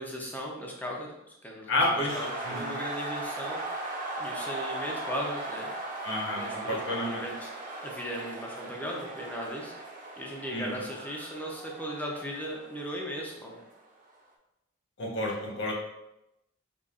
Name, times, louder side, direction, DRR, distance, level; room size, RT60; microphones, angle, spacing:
voice 1, 0.0-3.6 4.2-5.7 6.4-7.5 7.8-9.7 10.2-13.6, equal, 10° left, -1 dB, 0.6 m, -37 dB
voice 2, 1.7-2.7 6.0-7.2 10.5-10.7 15.0-15.7, left 1 dB, 60° left, -2 dB, 1.0 m, -30 dB
sound 1, 2.1-13.8, right 2 dB, 40° right, 0.7 m, -38 dB
5.2 x 2.5 x 2.4 m, 0.89 s
head